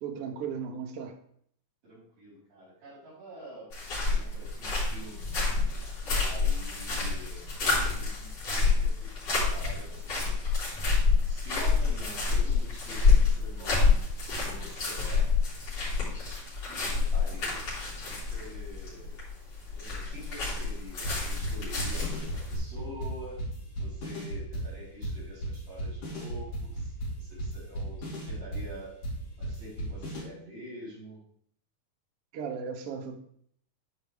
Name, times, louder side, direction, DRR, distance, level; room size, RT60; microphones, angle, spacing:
voice 1, 0.0-1.1 32.3-33.2, right 6 dB, 65° right, 3 dB, 1.6 m, -36 dB
voice 2, 1.8-5.3 6.0-7.5 7.9-10.5 11.2-14.0 14.4-15.3 16.7-19.2 19.7-23.4 23.8-29.0 29.4-31.2, equal, 85° right, -9 dB, 5.5 m, -47 dB
sound 1, 3.7-22.6, left 4 dB, 50° left, 4.7 m, -28 dB
sound 2, 21.0-30.2, right 1 dB, 75° left, 4.7 m, -35 dB
11.5 x 4.8 x 3.3 m, 0.64 s
omnidirectional pair, 3.8 m